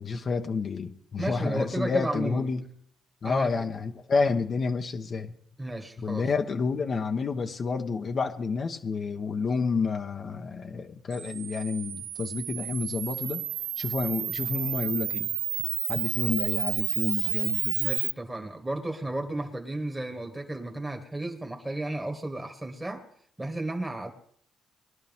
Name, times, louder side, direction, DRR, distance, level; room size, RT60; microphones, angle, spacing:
voice 1, 0.0-2.6 3.2-5.3 6.0-13.4 13.8-15.3 15.9-17.8, left 4 dB, 45° left, 4 dB, 1.2 m, -29 dB
voice 2, 1.2-2.5 3.2-3.7 5.6-6.2 17.8-23.0 23.4-24.1, right 2 dB, 10° right, 3 dB, 1.8 m, -33 dB
Camera, 11.1-18.1, right 12 dB, 85° right, 0.6 m, -31 dB
21.0 x 11.5 x 3.6 m, 0.62 s
cardioid pair, 90°, 0 cm